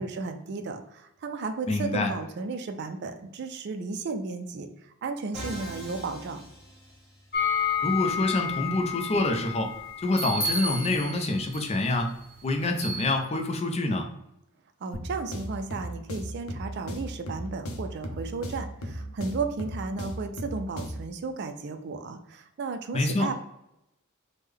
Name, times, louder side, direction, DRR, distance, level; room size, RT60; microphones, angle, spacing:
voice 1, 0.0-6.4 14.8-23.3, right 4 dB, 55° right, 7 dB, 0.3 m, -34 dB
voice 2, 1.7-2.1 7.8-9.7 10.0-12.1 12.4-14.1 22.9-23.3, left 2 dB, 30° left, 4 dB, 0.4 m, -26 dB
Musical instrument, 5.3-7.4, right 1 dB, ahead, 1.3 m, -41 dB
sound 1, 7.3-11.7 12.8-13.0, left 5 dB, 45° left, 0.8 m, -30 dB
sound 2, 14.9-21.1, equal, 85° left, 0.6 m, -37 dB
3.2 x 2.1 x 3.5 m, 0.87 s
head